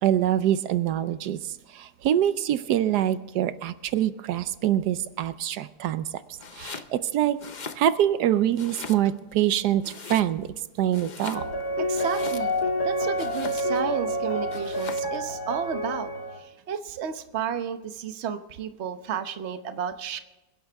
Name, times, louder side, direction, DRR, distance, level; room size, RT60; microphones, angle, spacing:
voice 1, 0.0-6.2 6.5-7.4 7.7-10.5 10.8-11.4, right 11 dB, 85° right, 13 dB, 1.3 m, -25 dB
Domestic sounds home sounds, 6.4-6.9 7.3-8.2 8.6-9.3 9.8-10.6 10.9-12.7 13.2-13.9 14.5-15.2, left 5 dB, 40° left, 0.7 m, -40 dB
sound 1, 11.3-16.4, equal, 70° left, 2.1 m, -28 dB
voice 2, 11.9-12.5 12.8-16.1 16.4-20.2, right 7 dB, 50° right, 9 dB, 1.1 m, -32 dB
27.5 x 11.0 x 3.5 m, 1.1 s
omnidirectional pair, 1.7 m